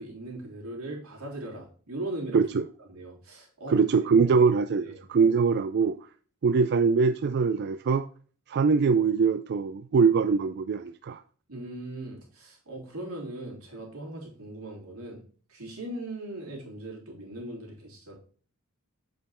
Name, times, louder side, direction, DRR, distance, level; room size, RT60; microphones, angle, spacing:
voice 1, 0.0-2.4 2.9-3.9 4.8-5.0 11.5-15.2 15.5-18.2, right 1 dB, 85° right, 3.4 m, -39 dB
voice 2, 2.3-2.6 3.7-6.0 6.4-8.0 8.5-11.2, right 5 dB, 50° right, 0.4 m, -23 dB
7.9 x 5.2 x 4.3 m
head